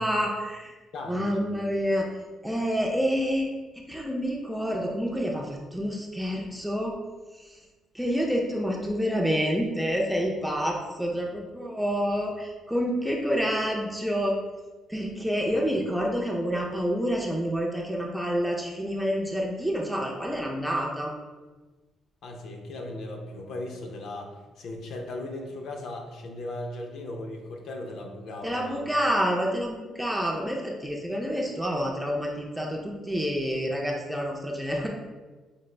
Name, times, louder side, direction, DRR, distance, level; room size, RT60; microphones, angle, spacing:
voice 1, 0.0-0.8 1.1-2.1 2.4-3.5 3.9-7.0 7.3-7.6 7.9-14.3 14.9-21.1 28.4-34.9, equal, ahead, -1 dB, 0.4 m, -28 dB
voice 2, 0.9-1.4 15.5-15.7 22.2-28.9, left 2 dB, 55° left, 2 dB, 0.6 m, -37 dB
5.1 x 2.4 x 3.2 m, 1.3 s
cardioid pair, 180°, 0 cm